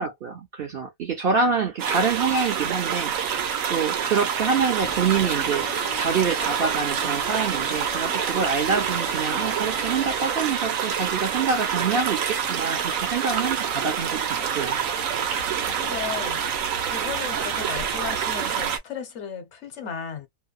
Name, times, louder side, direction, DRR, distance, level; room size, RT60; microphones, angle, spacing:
voice 1, 0.0-3.1 3.7-5.7 6.0-14.8, right 5 dB, 55° right, 0.7 m, -26 dB
sound 1, 1.8-18.8, right 8 dB, 75° right, 1.1 m, -27 dB
sound 2, 4.8-11.0, left 3 dB, 40° left, 0.3 m, -39 dB
voice 2, 15.7-16.5 16.8-20.3, left 7 dB, 60° left, 1.0 m, -35 dB
2.7 x 2.1 x 2.4 m
omnidirectional pair, 1.4 m